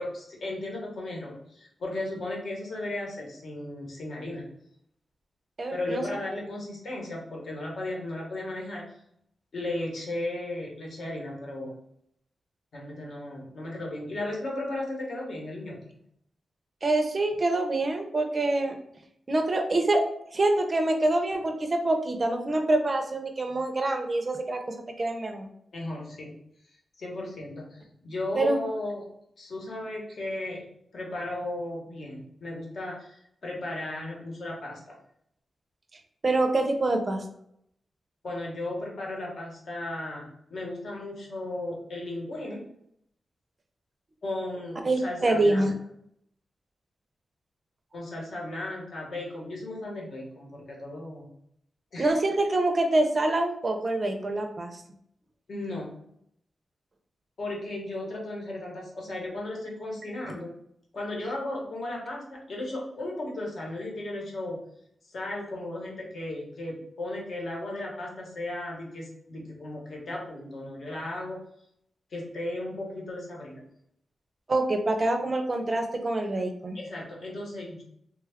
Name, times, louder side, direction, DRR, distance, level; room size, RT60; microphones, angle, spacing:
voice 1, 0.0-4.5 5.7-8.9 9.5-11.7 12.7-16.0 25.7-26.3 27.0-29.1 29.4-34.9 38.2-42.6 44.2-45.7 47.9-51.3 51.9-52.2 55.5-56.0 57.4-60.5 60.9-64.6 65.1-71.4 72.1-73.6 76.7-77.8, left 1 dB, 60° left, -2 dB, 1.0 m, -35 dB
voice 2, 5.6-6.0 16.8-18.8 19.3-20.0 20.3-25.5 28.3-28.6 36.2-37.2 44.8-45.7 52.0-54.8 74.5-76.8, right 2 dB, 30° right, 4 dB, 0.5 m, -26 dB
3.3 x 2.3 x 3.4 m, 0.72 s
wide cardioid pair, 175°, 0 cm